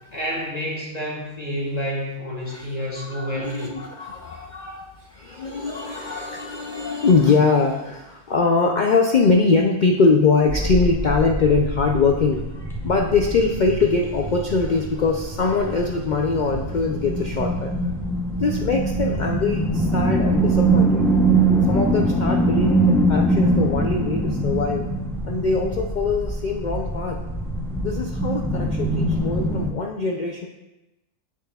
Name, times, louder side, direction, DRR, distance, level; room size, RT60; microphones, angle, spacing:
voice 1, 0.1-3.8, equal, 30° left, -4 dB, 1.5 m, -29 dB
voice 2, 2.9-17.9 18.4-21.1 21.7-24.9 25.2-27.2 27.8-30.5, left 4 dB, 80° left, 1 dB, 0.4 m, -22 dB
sound 1, 10.5-29.7, right 2 dB, 5° left, 0.4 m, -23 dB
7.7 x 6.8 x 2.3 m, 0.99 s
omnidirectional pair, 1.4 m